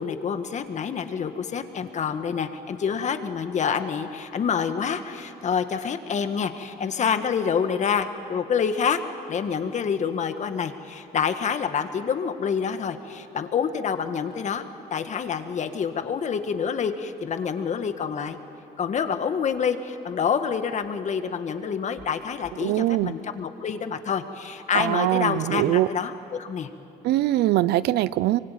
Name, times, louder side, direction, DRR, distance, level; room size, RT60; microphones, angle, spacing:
voice 1, 0.0-9.0 9.3-14.6 14.9-18.4 18.8-26.7, left 6 dB, 45° left, 8 dB, 1.7 m, -27 dB
voice 2, 22.6-23.1 24.7-25.9 27.0-28.4, right 15 dB, 75° right, 18 dB, 0.6 m, -22 dB
24.5 x 24.0 x 9.3 m, 2.8 s
cardioid pair, 110°, 17 cm